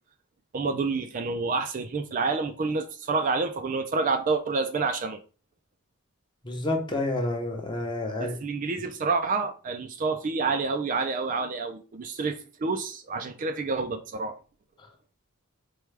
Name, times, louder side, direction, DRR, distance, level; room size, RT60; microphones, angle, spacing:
voice 1, 0.5-5.2 8.2-14.3, right 4 dB, 35° right, 0.3 m, -28 dB
voice 2, 6.4-8.4, left 2 dB, 20° left, 0.7 m, -29 dB
4.5 x 2.2 x 3.2 m
head